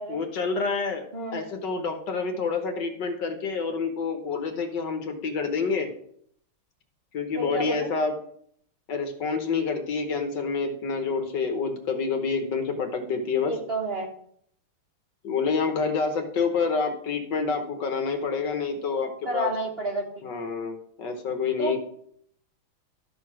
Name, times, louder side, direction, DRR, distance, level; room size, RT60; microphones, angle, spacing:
voice 1, 0.1-1.0 1.3-5.9 7.1-8.2 8.9-13.5 15.2-19.5 20.2-21.8, left 4 dB, 60° left, 6 dB, 1.6 m, -28 dB
voice 2, 7.3-7.9 13.5-14.1 19.2-20.0 21.6-21.8, right 1 dB, 35° right, 0 dB, 1.3 m, -30 dB
13.0 x 4.7 x 6.0 m, 0.66 s
omnidirectional pair, 2.3 m